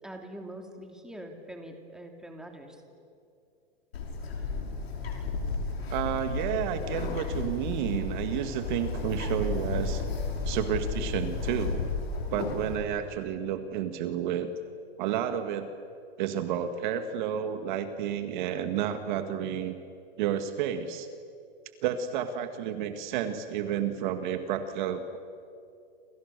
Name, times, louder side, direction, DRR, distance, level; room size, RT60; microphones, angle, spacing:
voice 1, 0.0-2.8, right 1 dB, ahead, 3 dB, 2.8 m, -43 dB
Bird, 3.9-12.8, left 3 dB, 90° left, 5.7 m, -33 dB
voice 2, 5.9-10.0 10.5-11.9 12.3-14.5 15.0-15.7 16.2-19.8 20.2-21.1 21.8-25.2, right 9 dB, 50° right, 8 dB, 2.1 m, -31 dB
29.5 x 28.0 x 6.9 m, 2.4 s
hypercardioid pair, 145°, 30 cm